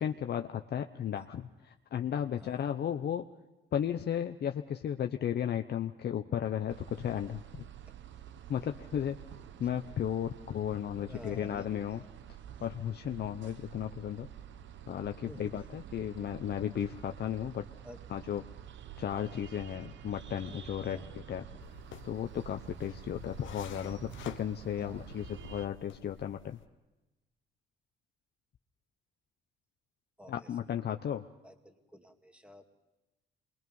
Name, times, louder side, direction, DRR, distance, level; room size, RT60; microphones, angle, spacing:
voice 1, 0.0-3.3 3.7-7.7 8.5-9.2 9.6-12.0 12.6-14.3 14.9-17.7 18.1-18.4 19.0-21.0 21.3-21.5 22.0-26.6 30.3-31.2, left 9 dB, 55° left, 6 dB, 0.8 m, -34 dB
sound 1, 6.7-25.7, right 10 dB, 70° right, 0.9 m, -49 dB
voice 2, 11.0-12.1 15.3-15.8 17.8-18.0 20.8-21.2 24.8-25.0 30.2-30.6 31.4-32.8, equal, 5° right, 5 dB, 2.2 m, -51 dB
sound 2, 21.6-26.7, left 9 dB, 75° left, 1.2 m, -50 dB
26.0 x 22.0 x 5.4 m, 1.0 s
cardioid pair, 90°, 20 cm